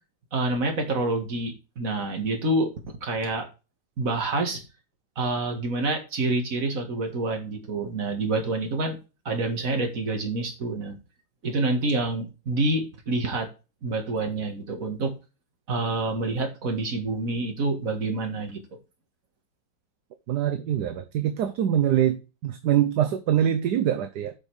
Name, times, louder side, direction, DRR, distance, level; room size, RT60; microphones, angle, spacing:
voice 1, 0.3-3.5 4.0-4.6 5.2-9.0 9.3-11.0 11.4-13.5 13.8-15.1 15.7-18.6, right 2 dB, 45° right, 2.2 m, -27 dB
voice 2, 20.3-22.2 22.4-24.3, right 10 dB, 65° right, 1.2 m, -24 dB
8.1 x 5.5 x 4.7 m
omnidirectional pair, 2.0 m